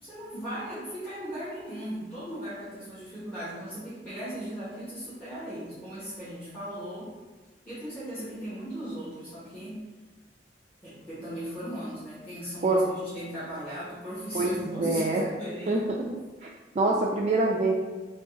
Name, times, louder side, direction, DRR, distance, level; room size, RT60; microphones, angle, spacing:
voice 1, 0.0-7.1 7.6-9.8 10.8-15.8 16.0-16.1, equal, 10° left, -14 dB, 1.1 m, -37 dB
voice 2, 14.3-15.2 15.7-15.8 16.4-16.5 16.8-17.7, right 2 dB, 40° right, -3 dB, 0.3 m, -25 dB
3.6 x 2.3 x 3.8 m, 1.3 s
head